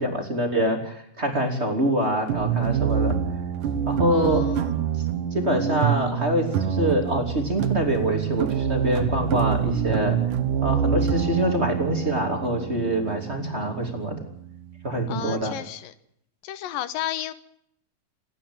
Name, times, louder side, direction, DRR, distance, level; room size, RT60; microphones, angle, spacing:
voice 1, 0.0-3.1 3.9-4.4 5.3-10.2 10.6-14.2 14.8-15.5, right 1 dB, 20° right, 4 dB, 3.1 m, -25 dB
sound 1, 2.3-15.1, right 8 dB, 70° right, 2.9 m, -26 dB
voice 2, 4.1-4.7 15.1-15.9 16.4-17.3, left 12 dB, 85° left, 14 dB, 2.8 m, -33 dB
28.0 x 11.0 x 8.8 m, 0.72 s
omnidirectional pair, 3.9 m